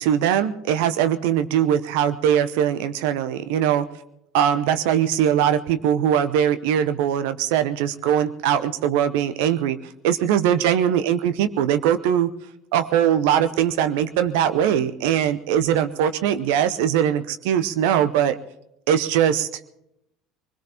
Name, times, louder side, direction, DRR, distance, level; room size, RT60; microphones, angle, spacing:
voice 1, 0.0-3.9 4.3-9.8 10.0-12.3 12.7-18.4 18.9-19.5, right 9 dB, 65° right, 12 dB, 0.7 m, -21 dB
23.5 x 21.0 x 2.9 m, 0.81 s
figure-of-eight pair, 65°, 0 cm